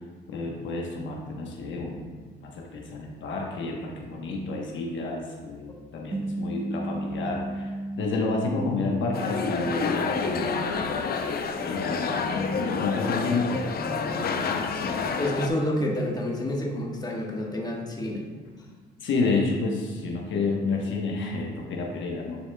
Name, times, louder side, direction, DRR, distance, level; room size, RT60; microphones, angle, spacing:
voice 1, 0.3-15.0 19.0-22.4, left 3 dB, 70° left, -1 dB, 1.0 m, -30 dB
sound 1, 6.1-10.8, right 1 dB, 10° right, 0.3 m, -35 dB
sound 2, 9.1-15.5, left 5 dB, 50° left, 0.5 m, -29 dB
voice 2, 15.2-18.3, left 1 dB, 20° left, -1 dB, 1.2 m, -29 dB
9.9 x 4.7 x 2.2 m, 1.5 s
cardioid pair, 90°, 20 cm